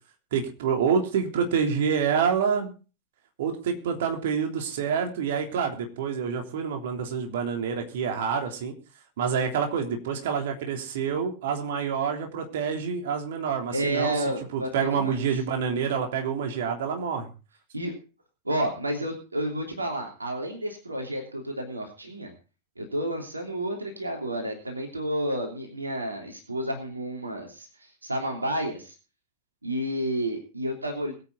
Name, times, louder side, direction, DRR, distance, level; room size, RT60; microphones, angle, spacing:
voice 1, 0.3-2.7 3.4-8.7 9.2-14.1 14.5-17.3, right 6 dB, 55° right, 3 dB, 3.3 m, -27 dB
voice 2, 13.7-15.3 17.7-17.9 18.4-22.3 22.8-28.9 29.6-31.1, right 1 dB, 80° right, 2 dB, 3.2 m, -30 dB
22.0 x 8.8 x 4.0 m, 0.34 s
figure-of-eight pair, 90°, 0 cm